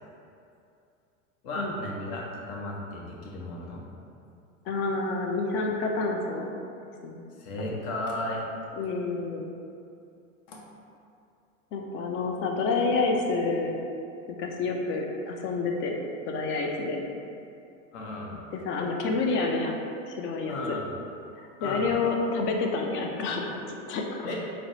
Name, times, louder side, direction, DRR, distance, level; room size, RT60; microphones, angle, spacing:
voice 1, 1.4-3.8 7.4-8.4 10.5-10.6 17.9-18.4 20.5-20.9 21.6-21.9 24.2-24.3, left 2 dB, 50° left, -2 dB, 0.8 m, -34 dB
voice 2, 4.7-6.6 7.0-7.2 7.6-7.7 8.8-9.5 11.7-13.8 14.4-15.9 16.2-17.0 18.5-19.8 20.1-20.8 21.6-24.3, left 3 dB, 30° left, 1 dB, 0.4 m, -28 dB
4.1 x 2.0 x 3.0 m, 2.6 s
hypercardioid pair, 100°, 40 cm